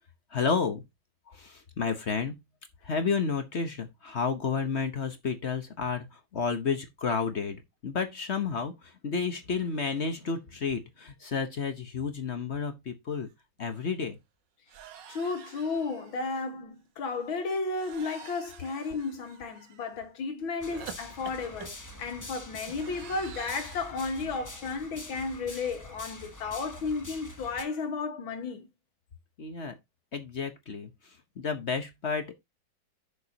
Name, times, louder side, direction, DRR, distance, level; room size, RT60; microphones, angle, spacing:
voice 1, 0.3-0.8 1.3-2.3 2.8-13.3 13.6-14.2 29.4-29.8 30.1-30.9 31.4-32.3, left 5 dB, 45° left, 0.9 m, -31 dB
sound 1, 13.3-13.4 13.6-13.9 14.7-16.4 17.8-19.9 20.7-23.9, right 9 dB, 65° right, 1.6 m, -48 dB
voice 2, 15.1-21.7 22.0-28.7, left 4 dB, 80° left, 2.3 m, -33 dB
sound 2, 20.6-27.6, left 1 dB, 15° left, 0.6 m, -45 dB
10.5 x 7.0 x 2.8 m
omnidirectional pair, 2.2 m